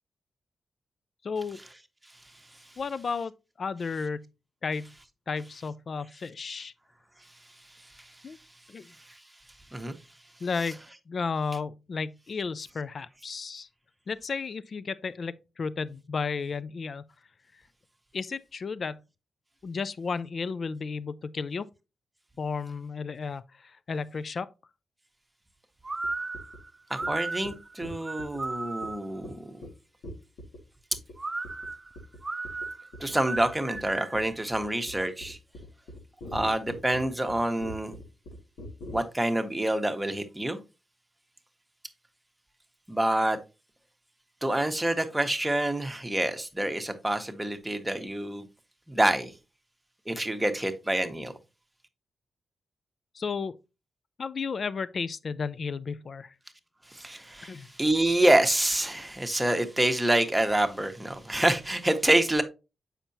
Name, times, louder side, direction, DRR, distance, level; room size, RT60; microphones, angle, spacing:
voice 1, 1.2-1.6 2.8-3.3 3.6-4.3 4.6-4.9 5.3-6.7 8.2-8.4 8.7-8.9 10.4-10.8 11.1-13.7 14.1-17.0 18.1-19.0 19.6-21.7 22.4-24.5 53.1-53.6 54.2-56.3 57.4-57.7, left 5 dB, 55° left, 0.4 m, -33 dB
sound 1, 25.8-29.2 31.2-34.3, right 3 dB, 30° right, 0.5 m, -35 dB
sound 2, 26.0-26.1 26.3-26.6 27.0-27.1 27.4-27.5 27.8-28.4 28.8-28.9 29.2-29.3 29.6-29.7 30.0-30.6 30.9-31.1 31.4-31.7 32.0-32.2 32.4-32.7 32.9-39.0, left 1 dB, 85° left, 2.2 m, -42 dB
voice 2, 26.9-29.6 33.0-35.4 36.3-38.0 38.9-40.6 42.9-43.4 44.4-48.5 48.9-49.3 50.1-51.3 56.9-62.4, right 1 dB, 10° right, 1.1 m, -27 dB
7.2 x 5.6 x 2.7 m
cardioid pair, 70°, 0 cm